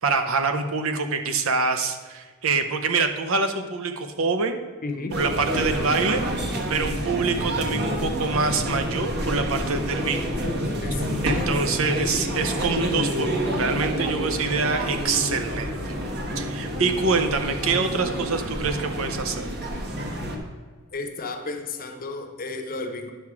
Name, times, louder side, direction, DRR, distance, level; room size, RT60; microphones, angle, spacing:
voice 1, 0.0-4.6 5.1-6.2 6.7-10.4 11.2-15.8 16.4-19.5, right 4 dB, 70° right, 7 dB, 0.8 m, -25 dB
voice 2, 4.8-5.2 10.8-11.1 20.9-23.1, left 3 dB, 40° left, 5 dB, 0.9 m, -33 dB
sound 1, 5.1-20.4, equal, 50° right, 1.2 m, -28 dB
10.5 x 6.0 x 4.8 m, 1.5 s
head